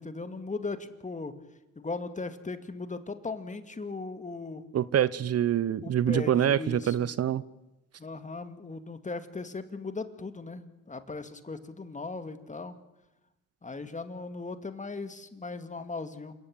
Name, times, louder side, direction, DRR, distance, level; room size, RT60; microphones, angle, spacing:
voice 1, 0.0-1.3 1.8-4.6 5.8-7.1 8.0-12.8 13.6-16.3, left 3 dB, 25° left, 10 dB, 2.3 m, -38 dB
voice 2, 4.7-7.4, right 10 dB, 50° right, 19 dB, 0.8 m, -25 dB
28.0 x 17.0 x 9.0 m, 0.96 s
cardioid pair, 85°, 31 cm